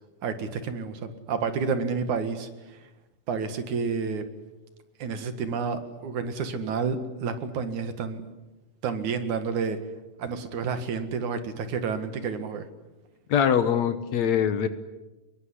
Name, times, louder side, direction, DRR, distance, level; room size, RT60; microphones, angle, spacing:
voice 1, 0.2-2.8 3.3-4.2 5.0-8.2 8.8-9.8 10.2-12.7, right 5 dB, 65° right, 9 dB, 3.1 m, -30 dB
voice 2, 13.3-14.7, left 8 dB, 65° left, 11 dB, 2.3 m, -23 dB
25.0 x 21.5 x 9.9 m, 1.1 s
omnidirectional pair, 3.7 m